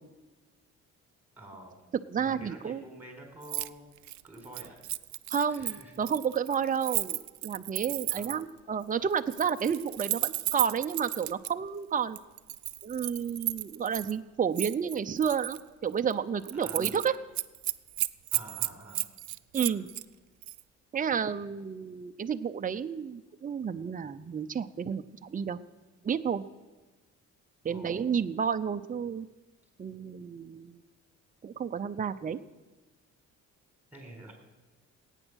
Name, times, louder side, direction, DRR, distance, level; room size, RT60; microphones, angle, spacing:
voice 1, 1.4-1.8 2.2-3.9 4.2-4.8 5.4-5.9 8.1-8.3 16.6-17.0 18.3-19.1 19.7-19.8 21.1-21.2 27.7-28.1 33.9-34.3, right 1 dB, 5° right, 2 dB, 4.4 m, -48 dB
voice 2, 2.1-2.8 5.3-12.2 12.8-17.2 19.5-19.9 20.9-25.6 26.0-26.4 27.6-29.3 29.8-30.8 31.4-32.4, right 7 dB, 25° right, 9 dB, 0.6 m, -31 dB
Keys jangling, 3.4-3.7 4.0-8.5 9.2-11.5 12.2-14.1 14.6-15.6 16.0-16.1 16.4-17.1 17.3-20.0 20.4-20.6, right 15 dB, 70° right, 0.5 m, -34 dB
18.5 x 9.1 x 6.3 m, 1.2 s
cardioid pair, 90°, 30 cm